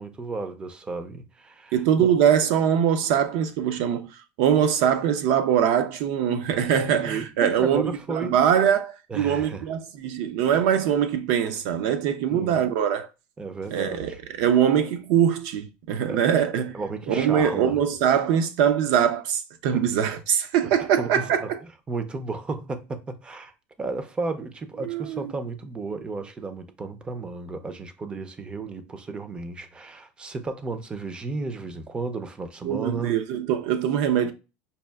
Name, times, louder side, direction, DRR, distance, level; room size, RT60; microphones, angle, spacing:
voice 1, 0.0-2.1 7.0-8.4 9.1-9.6 12.3-12.7 13.4-14.2 16.1-16.2 16.7-17.8 19.7-19.8 21.0-21.3 21.9-23.5 23.8-33.2, right 3 dB, 15° right, 0.5 m, -33 dB
voice 2, 1.7-13.1 13.7-16.8 17.1-21.6 24.8-25.3 32.6-34.3, right 9 dB, 65° right, 0.5 m, -23 dB
5.3 x 2.4 x 2.2 m
supercardioid pair, 135°, 6 cm